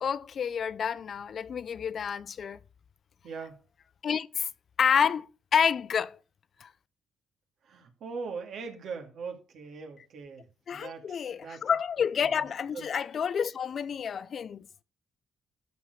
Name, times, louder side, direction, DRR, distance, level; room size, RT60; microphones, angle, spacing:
voice 1, 0.0-2.6 4.0-4.5 4.8-6.2 6.6-6.7 10.7-14.7, left 7 dB, 55° left, 0.6 m, -29 dB
voice 2, 3.2-3.6 7.6-11.7 12.2-12.5 12.7-12.8, right 5 dB, 70° right, 2.4 m, -41 dB
13.0 x 4.7 x 6.6 m
cardioid pair, 90°, 0 cm